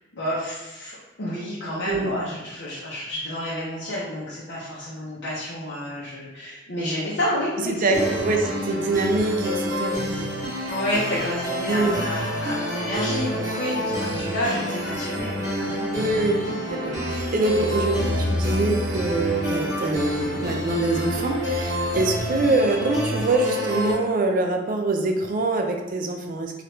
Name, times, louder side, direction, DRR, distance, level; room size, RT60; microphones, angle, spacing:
voice 1, 0.1-8.1 10.7-16.1 17.0-17.1, left 1 dB, 70° left, -8 dB, 0.6 m, -29 dB
voice 2, 1.9-2.4 7.6-10.3 11.7-12.0 15.6-16.4 16.7-26.6, right 2 dB, 50° right, 3 dB, 0.4 m, -24 dB
sound 1, 7.9-23.9, equal, 20° right, 0.9 m, -28 dB
2.9 x 2.4 x 3.1 m, 1.1 s
head